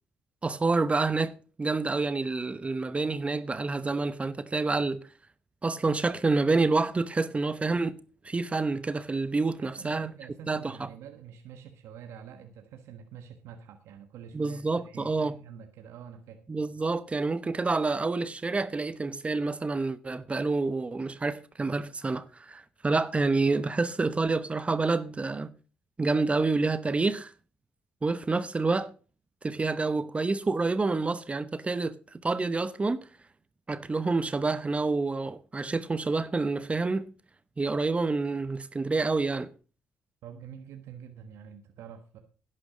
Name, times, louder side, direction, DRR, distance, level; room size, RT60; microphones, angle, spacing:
voice 1, 0.4-5.0 5.6-8.0 8.2-10.1 10.5-10.9 14.3-15.4 16.5-25.5 26.0-27.3 28.0-28.9 29.4-32.0 32.2-33.0 33.7-37.1 37.6-39.5, right 3 dB, 25° right, 0.9 m, -28 dB
voice 2, 9.6-16.4 40.2-42.2, right 8 dB, 75° right, 1.3 m, -46 dB
11.5 x 9.9 x 5.0 m
supercardioid pair, 70°, 5 cm